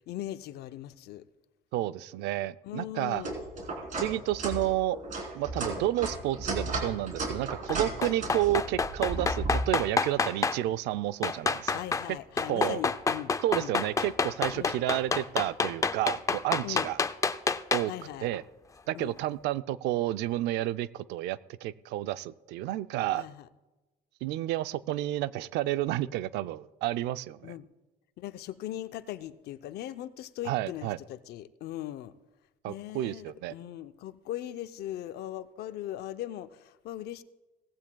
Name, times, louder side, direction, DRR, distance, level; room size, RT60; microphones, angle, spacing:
voice 1, 0.1-1.2 2.6-3.4 11.7-13.7 14.5-14.7 16.6-16.9 17.9-18.3 18.9-19.1 23.1-23.5 27.4-27.7 28.2-32.1 32.7-37.2, left 13 dB, 75° left, 0.6 m, -39 dB
voice 2, 1.7-3.2 4.0-5.0 5.3-11.7 12.5-12.8 13.4-17.0 17.7-17.9 18.2-18.4 18.9-23.2 24.2-27.5 30.4-31.0 32.6-33.5, right 14 dB, 90° right, 0.5 m, -30 dB
sound 1, 3.1-9.6, right 2 dB, 50° right, 3.5 m, -34 dB
sound 2, 7.7-10.6 11.2-12.1 12.4-18.0 18.3-18.4, left 4 dB, 20° left, 0.4 m, -28 dB
18.0 x 15.5 x 2.3 m
cardioid pair, 110°, 17 cm